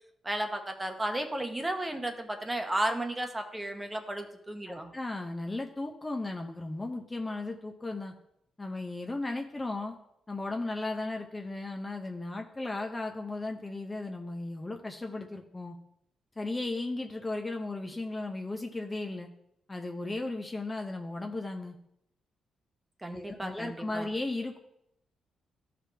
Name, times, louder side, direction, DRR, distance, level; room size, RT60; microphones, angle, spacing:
voice 1, 0.2-4.9 23.0-24.1, right 1 dB, 10° right, 5 dB, 0.9 m, -33 dB
voice 2, 4.7-8.1 8.6-10.0 10.3-15.8 16.4-19.3 19.7-21.8 23.1-24.6, left 2 dB, 15° left, 3 dB, 0.6 m, -36 dB
14.0 x 5.1 x 3.3 m, 0.77 s
cardioid pair, 145°, 0 cm